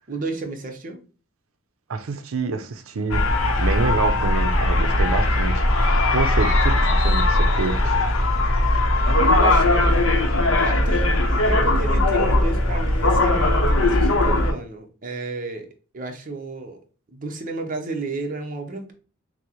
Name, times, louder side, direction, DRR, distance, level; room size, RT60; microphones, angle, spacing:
voice 1, 0.1-1.0 9.2-10.1 10.6-15.7 15.9-16.8 17.1-18.9, right 3 dB, 40° right, 0.7 m, -32 dB
voice 2, 1.9-3.3 3.6-5.6 6.1-8.0, right 4 dB, 80° right, 0.5 m, -27 dB
sound 1, 3.1-14.5, left 1 dB, 80° left, 0.7 m, -19 dB
6.1 x 2.1 x 2.9 m
head